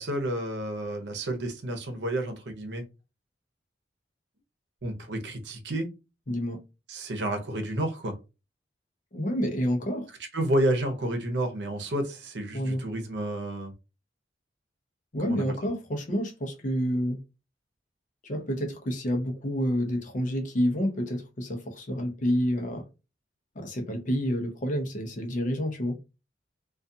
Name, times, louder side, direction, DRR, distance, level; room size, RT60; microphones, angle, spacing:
voice 1, 0.0-2.8 4.8-5.9 6.9-8.1 10.3-13.7 15.2-15.4, right 1 dB, 75° right, 0.7 m, -30 dB
voice 2, 6.3-6.6 9.1-10.1 12.5-12.8 15.1-17.2 18.2-22.9 23.6-25.9, equal, 45° left, 0.6 m, -29 dB
2.4 x 2.3 x 2.6 m
head